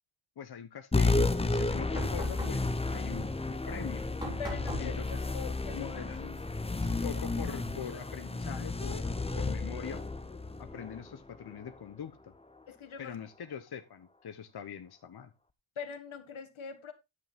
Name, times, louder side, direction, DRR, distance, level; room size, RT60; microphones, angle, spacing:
voice 1, 0.4-4.0 4.8-5.2 5.7-6.4 7.0-10.0 10.6-12.3 13.0-15.3, left 8 dB, 55° left, 0.9 m, -43 dB
sound 1, 0.9-11.8, left 3 dB, 15° left, 0.6 m, -32 dB
sound 2, 1.9-9.4, equal, 10° right, 3.8 m, -46 dB
voice 2, 4.4-5.0 5.3-5.9 7.0-7.2 12.7-13.2 15.7-16.9, left 6 dB, 85° left, 1.6 m, -42 dB
9.9 x 8.4 x 3.5 m
wide cardioid pair, 160°, 47 cm